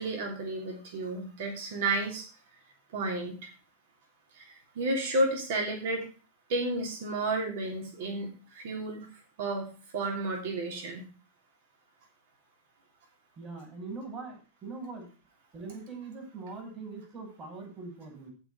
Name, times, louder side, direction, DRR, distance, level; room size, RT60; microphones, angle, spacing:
voice 1, 0.0-2.3 2.9-3.5 4.4-6.0 6.5-11.1, right 2 dB, 55° right, 2 dB, 3.0 m, -32 dB
voice 2, 13.4-15.1 15.5-18.3, right 4 dB, 30° right, 1 dB, 6.4 m, -42 dB
15.0 x 5.2 x 5.0 m, 0.34 s
figure-of-eight pair, 90°, 0 cm